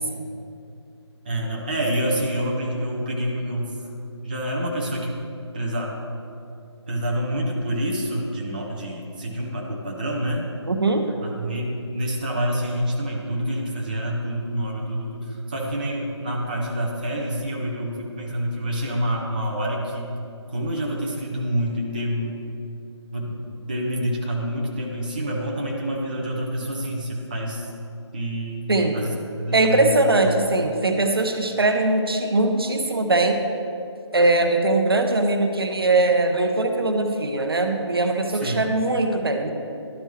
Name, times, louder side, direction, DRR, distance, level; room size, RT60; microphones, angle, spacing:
voice 1, 1.2-3.7 4.2-5.2 5.5-5.9 6.9-10.5 11.2-20.1 20.5-22.4 23.1-27.7 28.1-30.5 38.3-38.7, equal, 20° right, -3 dB, 0.5 m, -27 dB
voice 2, 10.7-11.1 28.7-29.0 29.5-33.4 34.1-39.5, right 2 dB, 55° right, 5 dB, 0.7 m, -21 dB
12.0 x 4.4 x 3.1 m, 2.6 s
figure-of-eight pair, 155°, 15 cm